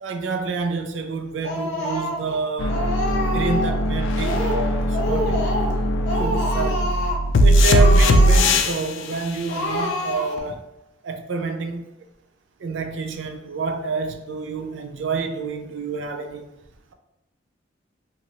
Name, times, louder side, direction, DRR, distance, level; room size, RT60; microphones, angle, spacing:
voice 1, 0.0-2.8 3.3-5.5 6.1-6.9 7.4-10.6 11.0-11.8 12.6-16.5, right 4 dB, 75° right, 0.4 m, -28 dB
Speech, 1.4-2.4 2.7-3.8 4.2-4.7 4.9-5.8 6.0-7.2 7.6-8.7 9.1-9.2 9.5-10.5, left 1 dB, 60° left, 0.8 m, -27 dB
sound 1, 2.6-8.9 10.4-10.5, equal, 85° left, 0.3 m, -19 dB
2.9 x 2.5 x 2.8 m
head